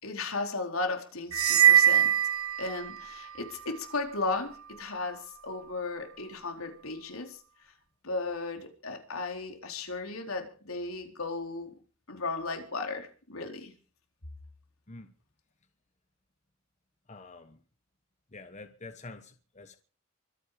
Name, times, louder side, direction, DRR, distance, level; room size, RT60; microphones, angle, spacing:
voice 1, 0.0-2.1 2.6-7.4 8.0-11.7 12.1-13.7, left 3 dB, 85° left, 4.3 m, -35 dB
sound 1, 1.3-3.2, right 9 dB, 85° right, 0.7 m, -22 dB
voice 2, 17.1-17.6 18.3-19.8, left 3 dB, 35° left, 1.2 m, -47 dB
24.5 x 9.7 x 5.1 m
head